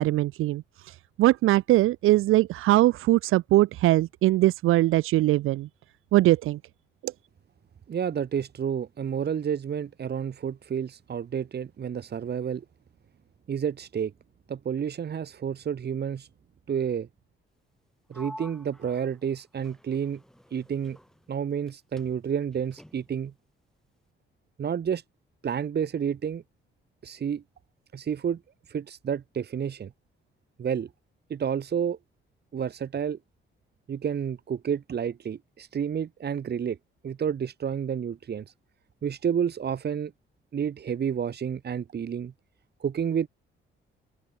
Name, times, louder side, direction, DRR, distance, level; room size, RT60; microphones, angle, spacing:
voice 1, 0.0-5.7 6.1-6.6 7.0-7.1, right 16 dB, 75° right, 0.5 m, -21 dB
voice 2, 7.9-12.6 13.5-14.1 14.5-16.3 16.7-17.1 18.1-20.2 20.5-21.0 21.3-23.3 24.6-25.0 25.4-26.4 27.0-27.4 27.9-28.4 28.7-29.9 30.6-30.9 31.3-32.0 32.5-33.2 33.9-36.8 37.0-38.5 39.0-40.1 40.5-42.3 42.8-43.3, right 8 dB, 50° right, 2.6 m, -30 dB
Sliding door, 18.1-21.7 22.0-23.3, equal, ahead, 7.6 m, -49 dB
open air
cardioid pair, 100°, 21 cm